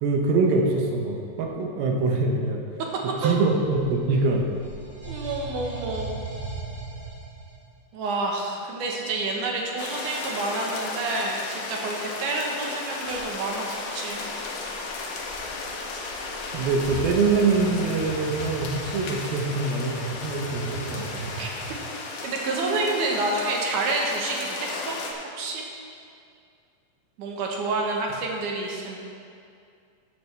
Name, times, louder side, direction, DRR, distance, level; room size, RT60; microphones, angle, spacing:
voice 1, 0.0-2.6 3.2-4.5 16.5-21.3, right 3 dB, 90° right, 1 dB, 2.8 m, -24 dB
sound 1, 3.8-7.7 13.0-13.3 14.1-21.8, right 3 dB, 25° right, 2.4 m, -39 dB
voice 2, 5.0-6.2 7.9-14.3 21.4-21.5 22.2-25.0 25.4-25.6 27.2-29.0, right 2 dB, 70° right, 0 dB, 2.4 m, -28 dB
sound 2, 9.8-25.1, left 3 dB, 70° left, 2.0 m, -35 dB
13.0 x 7.7 x 3.3 m, 2.4 s
omnidirectional pair, 4.1 m